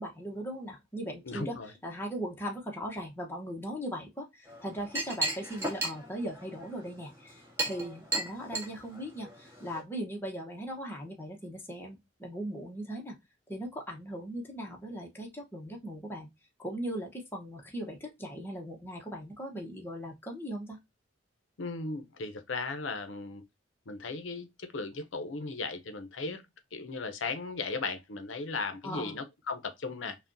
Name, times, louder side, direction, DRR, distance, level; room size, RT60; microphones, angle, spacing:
voice 1, 0.0-1.6 1.8-13.2 13.5-16.3 16.6-20.8 28.8-29.2, equal, 10° left, 1.0 m, -39 dB
voice 2, 1.3-1.7 21.6-23.4 23.9-26.4 26.7-30.2, left 3 dB, 75° left, 0.7 m, -36 dB
Chink clink, 4.4-9.8, right 2 dB, 15° right, 1.7 m, -36 dB
5.7 x 2.4 x 2.6 m
head